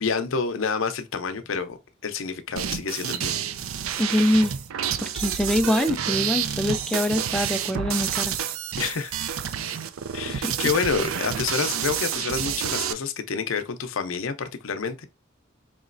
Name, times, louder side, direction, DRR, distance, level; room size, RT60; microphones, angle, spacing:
voice 1, 0.0-1.8 2.0-3.4 8.8-9.1 10.1-15.1, left 5 dB, 70° left, 0.6 m, -28 dB
sound 1, 2.6-12.9, right 9 dB, 85° right, 0.4 m, -29 dB
voice 2, 4.0-4.5 5.0-8.3 10.3-10.5, left 1 dB, 5° left, 0.3 m, -24 dB
4.8 x 3.0 x 2.5 m
head